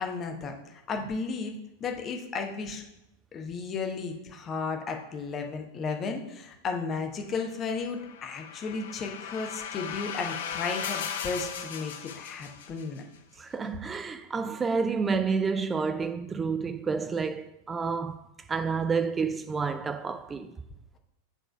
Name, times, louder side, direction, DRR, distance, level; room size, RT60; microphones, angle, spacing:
voice 1, 0.0-2.8 3.3-13.0, left 4 dB, 25° left, 0.9 m, -34 dB
sound 1, 7.7-13.0, left 8 dB, 60° left, 0.6 m, -37 dB
voice 2, 13.4-20.5, right 5 dB, 15° right, 0.3 m, -29 dB
7.2 x 3.8 x 5.7 m
figure-of-eight pair, 90°, 0 cm